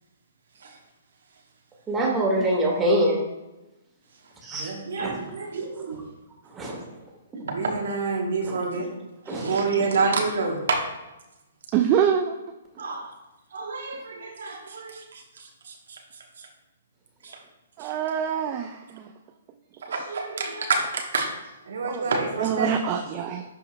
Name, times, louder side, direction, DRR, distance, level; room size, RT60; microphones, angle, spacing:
voice 1, 1.9-3.2 4.4-4.7 5.0-5.1 6.6-6.8 9.3-9.4, right 1 dB, 15° right, -2 dB, 1.8 m, -23 dB
voice 2, 4.5-6.0 7.4-8.9 9.3-10.8 12.8-13.1 13.5-16.0 16.4-16.5 17.2-17.4 17.8-17.9 19.8-21.3 21.7-22.7, right 4 dB, 65° right, 2 dB, 1.2 m, -28 dB
voice 3, 11.7-12.3 17.8-19.1 21.9-22.0 22.4-23.4, right 8 dB, 30° right, 4 dB, 0.5 m, -25 dB
11.0 x 4.5 x 2.3 m, 1.0 s
figure-of-eight pair, 125°, 0 cm